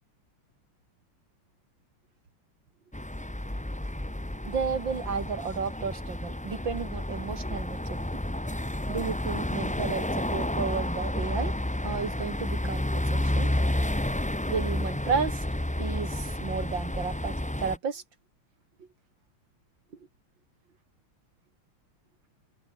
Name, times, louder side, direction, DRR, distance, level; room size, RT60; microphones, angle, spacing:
sound 1, 2.9-17.8, left 1 dB, 10° left, 0.3 m, -30 dB
voice 1, 4.4-8.1 8.9-11.5 11.8-13.5 14.5-15.4 15.8-18.0, right 5 dB, 60° right, 3.3 m, -32 dB
open air
omnidirectional pair, 2.3 m